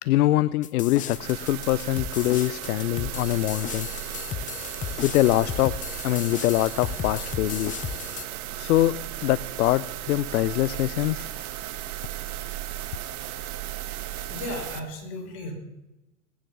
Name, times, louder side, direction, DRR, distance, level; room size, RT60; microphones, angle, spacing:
voice 1, 0.0-3.9 5.0-7.8 8.6-8.9 9.2-11.3, left 16 dB, 65° left, 19 dB, 0.6 m, -24 dB
sound 1, 0.6-8.2, left 9 dB, 15° left, 0.5 m, -35 dB
sound 2, 1.1-14.8, right 13 dB, 65° right, 1.4 m, -35 dB
voice 2, 14.2-15.5, left 2 dB, 50° left, 1 dB, 5.4 m, -35 dB
19.0 x 9.5 x 6.0 m, 0.99 s
hypercardioid pair, 105°, 47 cm